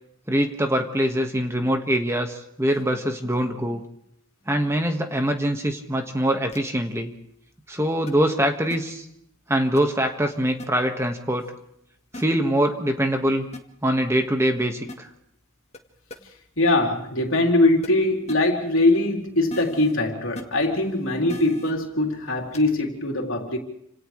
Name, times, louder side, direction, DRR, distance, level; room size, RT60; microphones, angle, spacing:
voice 1, 0.3-3.8 4.5-7.1 7.7-9.0 9.5-11.5 12.1-13.5 13.8-15.1, right 1 dB, 15° right, 1.7 m, -23 dB
sound 1, 6.5-6.7 8.1-8.2 8.7-8.8 9.8-9.9 10.6-10.7 12.1-12.2 13.5-13.6 14.9-15.0 15.7-15.8 16.1-16.2 17.8-17.9 18.3-18.4 19.5-19.9 20.4-20.5 21.3-21.7 22.5-22.7, left 2 dB, 30° left, 1.7 m, -37 dB
voice 2, 16.6-23.6, left 2 dB, 70° left, 3.7 m, -22 dB
29.5 x 27.0 x 3.3 m
head